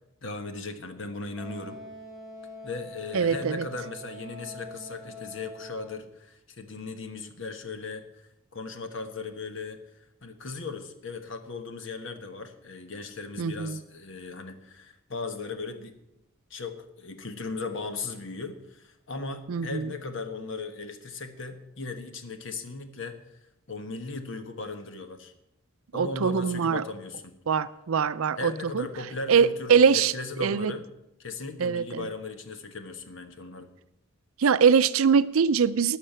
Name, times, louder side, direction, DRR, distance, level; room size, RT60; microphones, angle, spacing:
voice 1, 0.2-1.8 2.6-15.9 16.5-23.2 23.7-25.3 25.9-27.4 28.4-30.9 31.2-33.7, left 3 dB, 60° left, 8 dB, 1.3 m, -37 dB
Wind instrument woodwind instrument, 1.4-6.1, equal, ahead, 3.5 m, -44 dB
voice 2, 3.1-3.6 13.4-13.8 19.5-19.9 25.9-26.8 27.5-28.8 29.3-30.1 30.4-30.7 31.6-32.1 34.4-36.0, right 6 dB, 80° right, 15 dB, 0.5 m, -23 dB
12.0 x 6.6 x 8.9 m, 0.87 s
head